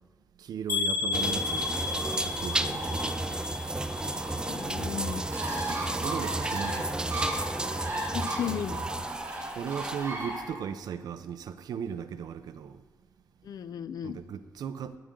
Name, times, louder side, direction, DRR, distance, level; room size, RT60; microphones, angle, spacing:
voice 1, 0.4-1.8 2.1-3.1 5.7-7.1 9.5-12.8 14.0-15.0, right 7 dB, 80° right, 0.6 m, -37 dB
sound 1, 0.7-4.7 5.0-5.6 6.0-6.2 6.5-6.6, left 5 dB, 55° left, 2.2 m, -33 dB
sound 2, 1.1-10.3, right 2 dB, 10° right, 0.4 m, -33 dB
Bird, 1.2-10.4, right 1 dB, 40° right, 4.0 m, -37 dB
voice 2, 4.5-5.2 8.1-8.9 13.4-14.2, left 9 dB, 75° left, 0.5 m, -35 dB
17.5 x 10.0 x 3.8 m
wide cardioid pair, 125°, 7 cm